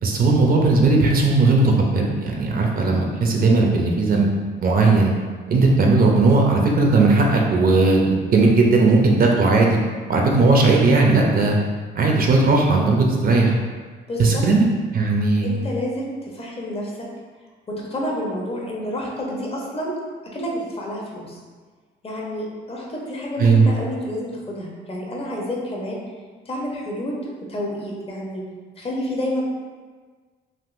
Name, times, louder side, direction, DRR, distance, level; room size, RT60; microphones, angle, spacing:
voice 1, 0.0-4.3 4.6-5.1 5.5-9.8 10.1-11.6 12.0-13.6 14.2-14.6 14.9-15.5 23.4-23.7, right 3 dB, 50° right, 0 dB, 0.5 m, -17 dB
voice 2, 14.1-14.4 15.4-17.1 17.7-20.0 20.2-21.4 22.0-26.0 26.5-28.4 28.8-29.4, equal, 30° left, -3 dB, 0.8 m, -29 dB
3.5 x 2.5 x 2.5 m, 1.5 s
cardioid pair, 90°, 20 cm